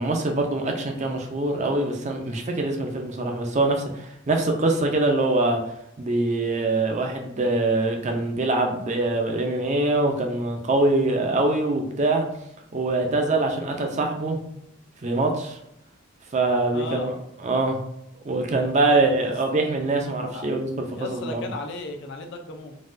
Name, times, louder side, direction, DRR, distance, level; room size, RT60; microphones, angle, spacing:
voice 1, 0.0-5.6 6.0-12.3 12.7-14.4 15.0-15.6 16.3-17.1 17.4-17.8 18.2-20.7 21.0-21.4, right 2 dB, 35° right, 3 dB, 0.5 m, -23 dB
voice 2, 16.7-17.2 18.7-19.3 20.3-20.5 20.9-22.8, left 3 dB, 60° left, 3 dB, 0.5 m, -36 dB
4.0 x 2.3 x 2.5 m, 0.79 s
head